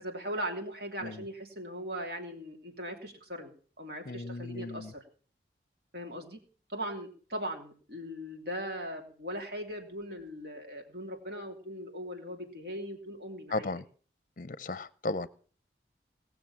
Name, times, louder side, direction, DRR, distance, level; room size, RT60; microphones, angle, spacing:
voice 1, 0.0-5.0 5.9-6.4 6.7-13.8, equal, 65° right, 3 dB, 3.0 m, -39 dB
voice 2, 4.1-4.9 13.5-13.8 14.4-15.3, left 2 dB, 50° left, 17 dB, 0.6 m, -35 dB
19.0 x 6.9 x 7.2 m, 0.43 s
head